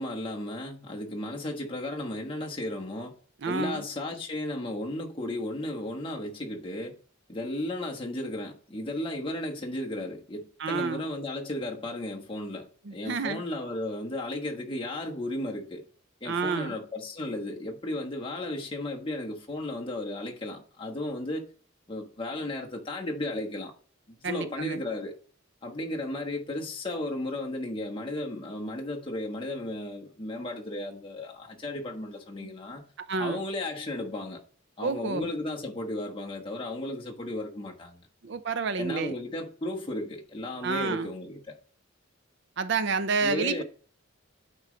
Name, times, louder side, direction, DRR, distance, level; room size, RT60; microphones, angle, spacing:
voice 1, 0.0-3.1 3.5-7.0 7.3-15.8 16.2-21.5 21.9-23.7 24.1-25.2 25.6-32.9 33.2-34.4 34.8-38.0 38.8-41.6 43.2-43.6, left 1 dB, 25° left, 1.2 m, -34 dB
voice 2, 3.4-3.8 10.6-11.0 12.9-13.4 16.3-16.8 24.2-24.8 32.4-32.5 33.0-33.4 34.8-35.3 38.2-39.1 40.6-41.1 42.6-43.6, right 4 dB, 60° right, 0.5 m, -29 dB
8.9 x 3.2 x 5.1 m
head